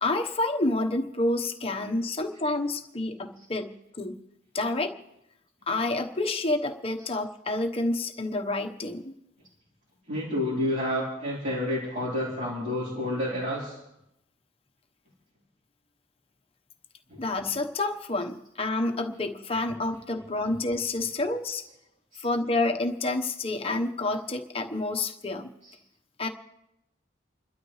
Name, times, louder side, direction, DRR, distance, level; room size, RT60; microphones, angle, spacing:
voice 1, 0.0-4.2 4.5-4.9 5.7-9.1 17.2-21.6 22.2-25.5 26.2-26.3, left 2 dB, 30° left, 4 dB, 1.1 m, -29 dB
voice 2, 10.1-13.8 17.1-17.2 22.1-22.3 25.6-25.7, left 1 dB, 45° right, -7 dB, 4.0 m, -30 dB
29.5 x 12.5 x 3.2 m, 0.87 s
head